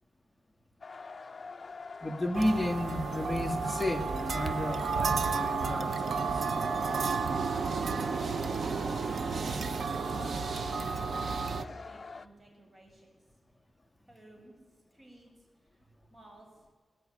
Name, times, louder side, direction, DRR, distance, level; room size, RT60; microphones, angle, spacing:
sound 1, 0.8-12.3, left 4 dB, 40° left, 0.7 m, -45 dB
voice 1, 2.0-6.4, left 1 dB, 10° left, 4 dB, 1.9 m, -33 dB
sound 2, 2.3-11.6, right 5 dB, 65° right, 0.9 m, -32 dB
voice 2, 10.7-13.2 14.1-14.6 14.9-15.8 16.1-16.6, right 1 dB, 30° right, 1 dB, 7.1 m, -57 dB
19.0 x 18.0 x 9.9 m, 1.4 s
wide cardioid pair, 125°, 0 cm